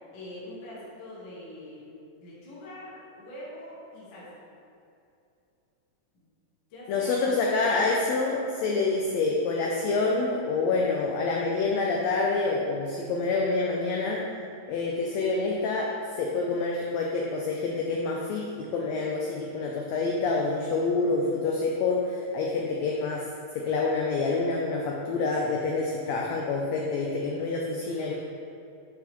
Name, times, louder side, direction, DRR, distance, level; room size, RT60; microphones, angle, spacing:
voice 1, 0.1-1.8 2.2-4.3 6.1-6.3 6.7-8.0 27.9-28.1, left 1 dB, 50° left, -8 dB, 1.7 m, -44 dB
voice 2, 6.9-14.3 14.7-23.3 23.5-28.1, left 3 dB, 80° left, -1 dB, 1.5 m, -27 dB
8.6 x 3.9 x 3.0 m, 2.6 s
omnidirectional pair, 3.6 m